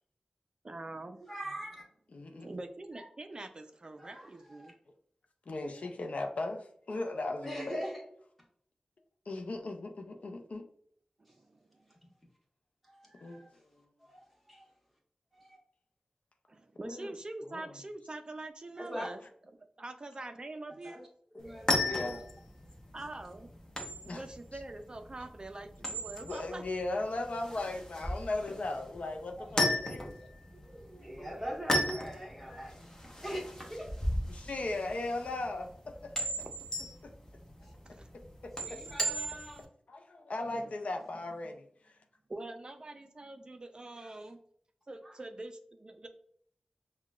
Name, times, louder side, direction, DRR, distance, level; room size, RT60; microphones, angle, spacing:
voice 1, 0.6-1.2 2.4-4.7 11.3-11.6 16.5-19.2 19.8-21.0 22.9-23.5 24.1-26.6 37.7-38.1 40.4-40.7 42.3-44.4 44.9-46.1, right 2 dB, 40° right, 6 dB, 0.3 m, -44 dB
voice 2, 1.2-1.8 2.9-3.0 4.0-4.7 7.4-8.0 12.8-13.5 14.0-14.7 15.3-15.6 18.7-19.1 20.8-21.0 21.3-22.2 29.4-29.5 30.1-33.9 37.6-37.7 38.6-39.6 44.0-44.1 45.0-45.2, equal, 5° left, -2 dB, 1.2 m, -43 dB
voice 3, 2.1-2.5 5.5-7.9 9.3-10.7 13.2-13.9 16.8-17.1 17.4-17.7 21.8-22.2 24.1-24.2 24.5-24.6 26.2-30.1 31.0-31.1 34.3-36.5 37.0-37.1 38.4-39.1 39.9-42.0, left 2 dB, 70° left, 4 dB, 0.5 m, -38 dB
sound 1, 21.4-39.6, left 1 dB, 25° left, 0.8 m, -36 dB
5.7 x 2.2 x 2.3 m, 0.64 s
wide cardioid pair, 85°, 2 cm